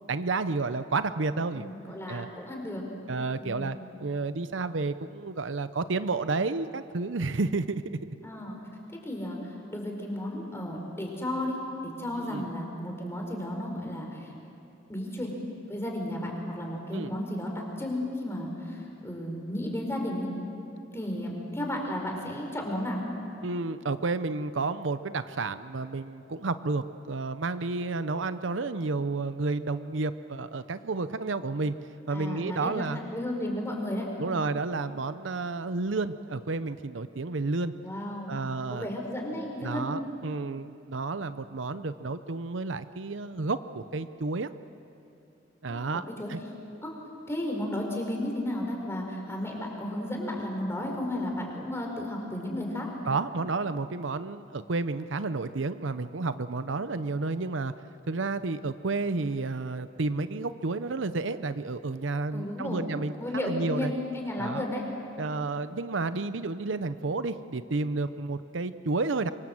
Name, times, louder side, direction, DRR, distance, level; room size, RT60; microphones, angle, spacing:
voice 1, 0.0-1.7 2.1-2.3 3.1-8.0 12.2-12.5 16.9-17.2 23.4-31.8 32.1-33.0 34.2-37.7 38.3-38.9 39.6-44.5 45.6-46.0 46.3-46.4 53.1-57.7 58.1-63.9 64.4-64.7 65.2-69.3, right 3 dB, 75° right, 12 dB, 0.7 m, -31 dB
voice 2, 1.5-2.8 3.4-3.8 8.2-8.6 8.9-11.6 11.8-14.3 14.9-15.3 15.7-20.3 20.9-23.0 32.1-34.1 37.8-38.4 38.7-39.9 45.7-45.8 46.2-46.3 46.8-46.9 47.3-52.9 62.3-62.9 63.2-64.8, left 1 dB, 15° left, 1 dB, 4.5 m, -33 dB
26.0 x 23.5 x 7.8 m, 2.7 s
head